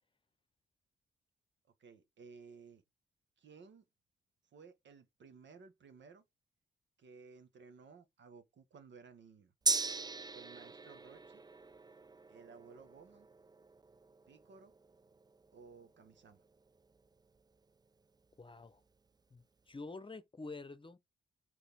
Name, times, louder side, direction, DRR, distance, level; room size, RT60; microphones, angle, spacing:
voice 1, 1.6-2.8 3.4-3.8 4.4-6.2 7.0-9.5 10.3-11.4 12.3-13.3 14.3-14.7 15.5-16.4, right 5 dB, 65° right, 1.6 m, -57 dB
Gong, 9.7-17.4 17.8-17.9, right 4 dB, 20° right, 0.5 m, -41 dB
voice 2, 18.4-18.8 19.3-21.0, left 3 dB, 25° left, 0.9 m, -48 dB
5.3 x 4.1 x 5.2 m
supercardioid pair, 60°, 20 cm